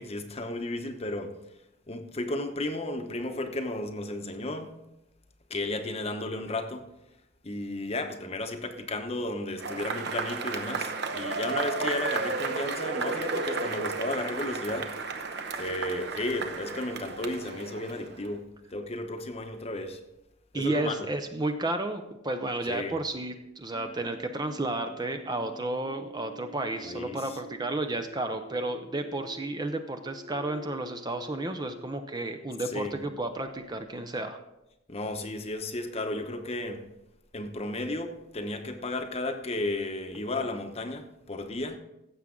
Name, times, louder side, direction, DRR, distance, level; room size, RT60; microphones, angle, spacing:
voice 1, 0.0-1.4 1.9-4.8 5.5-6.9 7.4-14.9 15.6-20.0 20.5-21.1 22.7-23.0 26.8-27.4 32.7-33.0 34.9-36.9 37.3-41.8, left 2 dB, 30° left, 6 dB, 0.9 m, -33 dB
Cheering / Applause / Crowd, 9.6-18.3, right 4 dB, 55° right, 0.8 m, -33 dB
voice 2, 20.5-34.4, right 2 dB, 20° right, 7 dB, 0.6 m, -32 dB
sound 1, 23.7-32.9, right 2 dB, 5° left, 1.3 m, -49 dB
15.5 x 7.3 x 3.7 m, 0.89 s
head